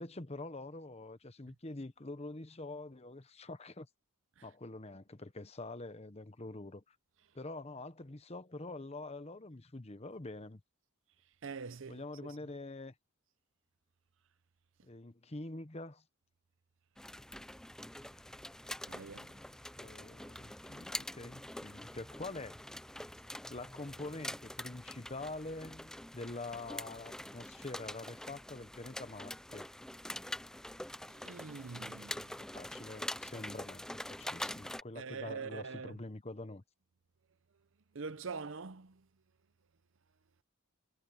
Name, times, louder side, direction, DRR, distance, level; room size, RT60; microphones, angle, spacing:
voice 1, 0.0-3.9 4.4-7.0 7.3-10.6 11.9-12.9 14.8-16.0 19.8-22.6 23.5-29.7 32.5-36.6, left 2 dB, 30° left, 1.0 m, -45 dB
voice 2, 11.4-12.3 18.9-19.3 31.1-32.3 34.9-36.0 37.9-39.0, right 5 dB, 60° right, 0.7 m, -44 dB
sound 1, 17.0-34.8, left 1 dB, 5° left, 0.3 m, -45 dB
head